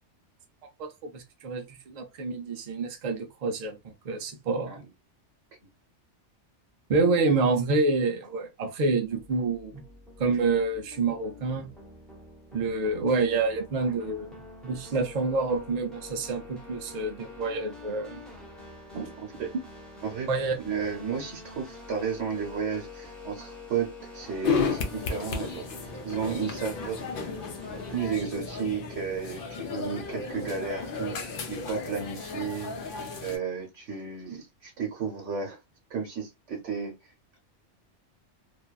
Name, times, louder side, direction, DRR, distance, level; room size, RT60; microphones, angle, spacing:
voice 1, 0.8-4.8 6.9-9.8 10.2-11.7 12.5-14.3 14.6-18.2 18.9-19.1 20.3-20.5, right 3 dB, 60° right, 0.4 m, -28 dB
voice 2, 4.6-4.9 19.2-19.5 20.0-20.3 20.6-27.2 27.7-33.0 33.2-35.6 35.9-37.1, right 6 dB, 90° right, 1.1 m, -33 dB
sound 1, 9.1-28.0, left 2 dB, ahead, 0.6 m, -47 dB
sound 2, 24.4-33.4, left 5 dB, 60° left, 0.7 m, -33 dB
2.6 x 2.2 x 2.2 m
omnidirectional pair, 1.2 m